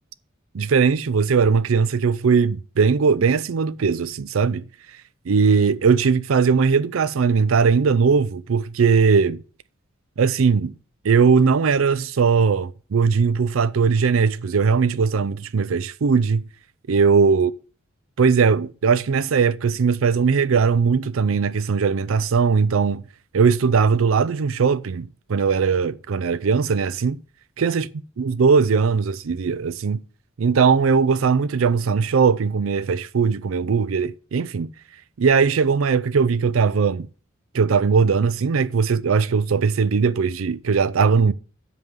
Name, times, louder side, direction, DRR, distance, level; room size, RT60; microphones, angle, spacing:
voice 1, 0.5-4.6 5.3-9.4 10.2-10.7 11.0-16.4 16.9-17.5 18.2-23.0 23.3-27.2 27.6-27.9 28.2-30.0 30.4-34.7 35.2-37.1 37.5-41.3, right 5 dB, 80° right, 0.5 m, -19 dB
7.9 x 5.5 x 7.2 m
head